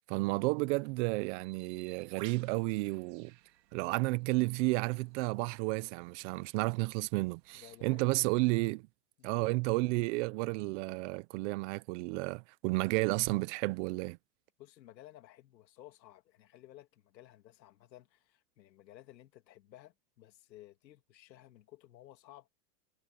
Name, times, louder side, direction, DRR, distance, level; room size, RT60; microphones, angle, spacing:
voice 1, 0.1-3.3 3.7-8.9 9.2-14.2, right 24 dB, 45° right, 0.8 m, -32 dB
Bird, 1.4-7.8, right 15 dB, 80° right, 2.1 m, -59 dB
voice 2, 7.5-8.2 9.2-9.5 12.7-12.9 14.6-22.5, left 14 dB, 85° left, 2.3 m, -56 dB
supercardioid pair, 140°, 50 cm